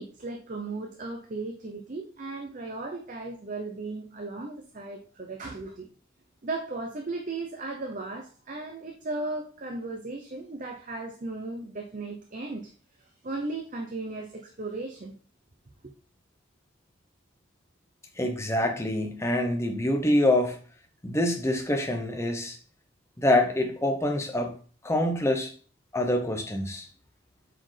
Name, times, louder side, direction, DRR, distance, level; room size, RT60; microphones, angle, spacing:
voice 1, 0.0-5.9 6.4-12.7 13.0-15.1, right 2 dB, 35° right, 0.6 m, -36 dB
voice 2, 18.2-20.6 21.0-22.6 23.2-24.5 24.8-25.5 25.9-26.9, left 1 dB, 15° left, 0.8 m, -25 dB
7.5 x 4.3 x 3.3 m
head